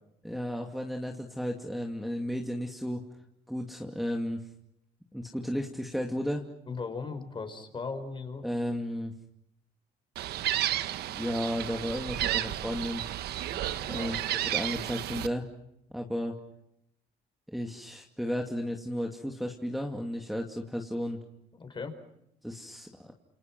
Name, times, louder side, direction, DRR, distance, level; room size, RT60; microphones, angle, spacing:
voice 1, 0.2-3.0 3.5-4.4 5.1-6.4 8.4-9.1 11.1-13.0 13.9-14.2 14.4-15.5 15.9-16.3 17.5-21.2 22.4-23.1, equal, ahead, 1 dB, 2.6 m, -33 dB
voice 2, 6.7-8.5 13.5-14.2 21.5-21.9, left 4 dB, 30° left, 7 dB, 5.3 m, -38 dB
Gull seagull, 10.2-15.3, right 12 dB, 70° right, 1.3 m, -32 dB
29.5 x 28.0 x 6.2 m, 0.78 s
cardioid pair, 110°, 17 cm